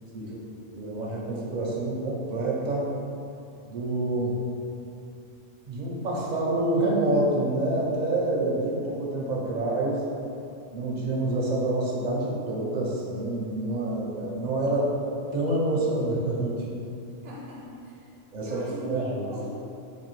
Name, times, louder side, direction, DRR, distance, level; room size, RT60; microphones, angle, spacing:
voice 1, 0.7-2.9 3.7-4.4 5.7-10.0 10.7-15.0 15.3-16.7 18.3-19.3, right 2 dB, 50° right, -4 dB, 0.5 m, -27 dB
voice 2, 17.2-18.0 18.4-19.5, equal, 80° right, -6 dB, 1.0 m, -39 dB
4.0 x 2.6 x 3.1 m, 2.7 s
omnidirectional pair, 1.3 m